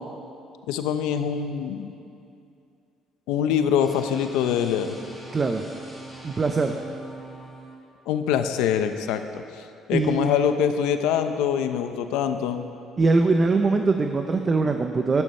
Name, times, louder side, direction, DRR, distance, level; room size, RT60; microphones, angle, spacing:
voice 1, 0.7-1.9 3.3-5.0 8.1-9.4 9.9-12.6, left 8 dB, 90° left, 8 dB, 0.7 m, -24 dB
sound 1, 3.8-7.7, right 2 dB, 5° right, 3.5 m, -42 dB
voice 2, 5.3-5.6 6.2-6.7 9.9-10.3 13.0-15.2, right 3 dB, 30° right, 5 dB, 0.7 m, -22 dB
12.0 x 11.0 x 5.4 m, 2.6 s
cardioid pair, 100°, 0 cm